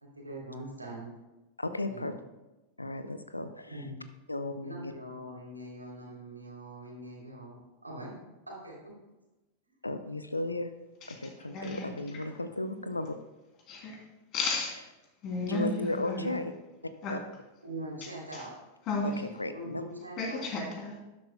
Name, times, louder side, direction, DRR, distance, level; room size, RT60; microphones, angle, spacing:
voice 1, 0.0-1.1 1.8-2.1 3.7-4.0 4.6-8.2 8.5-8.9 16.2-16.3 17.6-18.5 19.5-20.5, right 1 dB, 85° right, -3 dB, 3.0 m, -42 dB
voice 2, 1.6-2.1 2.8-3.9 4.3-4.9 9.8-10.7 11.1-13.1 15.4-16.5 17.1-17.2 19.0-19.8, left 2 dB, 85° left, 10 dB, 0.6 m, -35 dB
voice 3, 11.5-11.8 13.7-14.0 14.3-14.7 15.2-16.2 17.0-17.1 18.9-19.1 20.2-21.0, left 3 dB, 35° left, -1 dB, 2.8 m, -33 dB
12.5 x 10.5 x 2.2 m, 1.0 s
figure-of-eight pair, 90°, 0 cm